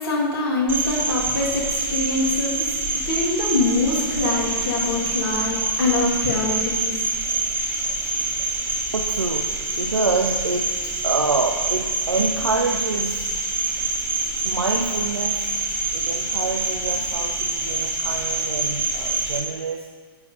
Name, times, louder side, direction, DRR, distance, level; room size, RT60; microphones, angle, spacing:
voice 1, 0.0-7.1, left 2 dB, 65° left, -5 dB, 2.0 m, -24 dB
Cricket, 0.7-19.4, right 3 dB, 15° right, 1.5 m, -26 dB
voice 2, 8.9-13.3 14.4-15.5 15.9-19.9, right 4 dB, 80° right, 3 dB, 0.5 m, -26 dB
10.5 x 8.1 x 2.8 m, 1.5 s
figure-of-eight pair, 105°, 13 cm